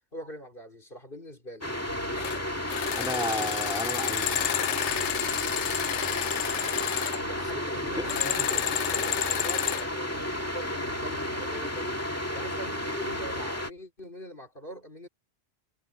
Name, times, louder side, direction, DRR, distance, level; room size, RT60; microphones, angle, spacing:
voice 1, 0.1-1.8 2.8-3.3 5.9-6.3 7.1-12.0 12.3-15.1, equal, 50° left, 4.8 m, -43 dB
sound 1, 1.6-13.7, left 1 dB, 15° left, 2.1 m, -32 dB
sound 2, 1.9-4.6 4.9-6.9 7.2-10.6 10.9-13.5 13.8-13.9, right 1 dB, 75° right, 3.0 m, -50 dB
sound 3, 2.2-2.4 2.7-7.2 8.0-9.9, left 11 dB, 80° left, 1.0 m, -30 dB
voice 2, 3.0-4.4 7.4-7.5 8.0-8.4, left 1 dB, 5° right, 3.6 m, -33 dB
omnidirectional pair, 1.2 m